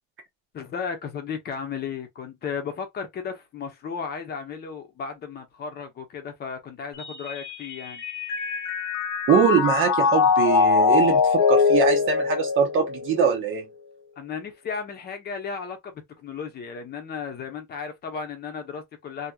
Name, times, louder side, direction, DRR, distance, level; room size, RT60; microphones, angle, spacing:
voice 1, 0.5-8.0 14.2-19.3, left 6 dB, 35° left, 0.8 m, -34 dB
Mallet percussion, 7.0-13.4, left 5 dB, 75° left, 0.8 m, -22 dB
voice 2, 9.3-13.7, right 7 dB, 45° right, 0.8 m, -22 dB
2.8 x 2.8 x 2.3 m
cardioid pair, 175°, 29 cm